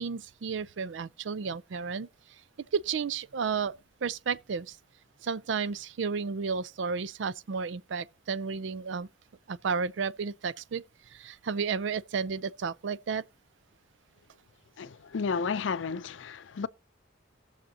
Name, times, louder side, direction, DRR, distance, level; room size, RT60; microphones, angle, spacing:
voice 1, 0.0-2.1 2.7-3.7 4.0-4.8 5.2-9.1 9.5-10.8 11.1-13.2, right 5 dB, 75° right, 0.4 m, -32 dB
voice 2, 14.8-16.7, left 5 dB, 80° left, 0.5 m, -32 dB
19.0 x 6.5 x 2.8 m
head